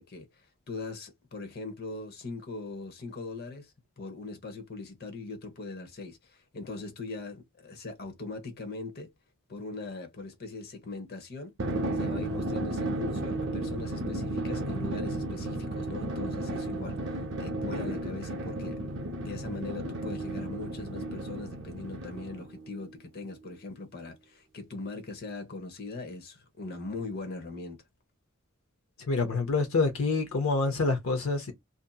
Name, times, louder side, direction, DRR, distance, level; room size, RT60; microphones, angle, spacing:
voice 1, 0.0-9.1 9.5-11.5 11.9-18.8 19.2-27.8, left 3 dB, 50° left, 0.8 m, -40 dB
Drum, 11.6-22.6, right 1 dB, 55° right, 0.6 m, -33 dB
voice 2, 29.1-31.5, left 3 dB, 75° left, 0.6 m, -27 dB
2.7 x 2.5 x 2.2 m
head